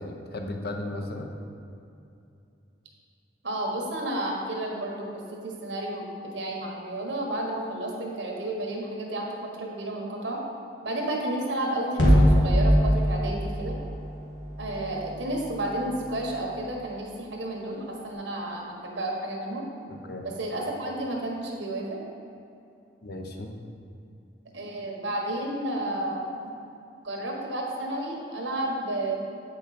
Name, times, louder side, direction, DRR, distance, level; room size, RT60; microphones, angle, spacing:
voice 1, 0.0-1.3 19.9-20.3 23.0-23.5, left 1 dB, 60° left, 3 dB, 0.8 m, -35 dB
voice 2, 3.4-5.1 5.3-6.1 6.3-9.3 9.5-10.4 10.8-13.7 14.6-19.6 20.2-22.0 24.5-26.2 27.0-29.1, right 1 dB, 80° right, -1 dB, 1.3 m, -31 dB
sound 1, 11.9-16.3, equal, 90° left, 1.8 m, -24 dB
8.2 x 5.3 x 4.2 m, 2.6 s
head